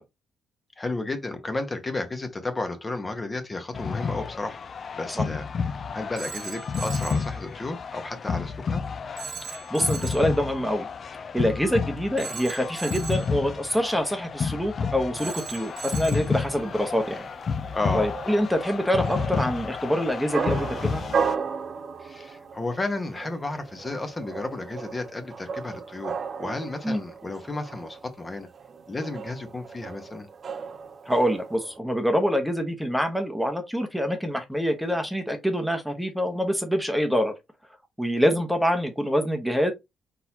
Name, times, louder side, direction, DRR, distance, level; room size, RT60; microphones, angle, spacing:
voice 1, 0.8-4.6 4.9-5.4 5.9-8.8 17.7-18.1 22.0-28.5 28.9-30.3, left 2 dB, 25° left, 1.1 m, -32 dB
sound 1, 3.7-21.4, left 5 dB, 45° left, 0.5 m, -31 dB
Telephone, 6.2-7.3 9.2-10.3 12.2-13.3 15.2-16.3, right 7 dB, 70° right, 1.1 m, -38 dB
voice 2, 9.5-10.9 11.3-17.2 17.9-21.0 26.8-27.0 31.1-37.3 38.0-39.7, equal, ahead, 1.0 m, -25 dB
sound 2, 15.4-31.8, right 6 dB, 45° right, 0.6 m, -35 dB
4.3 x 3.9 x 2.7 m
cardioid pair, 90°, 0 cm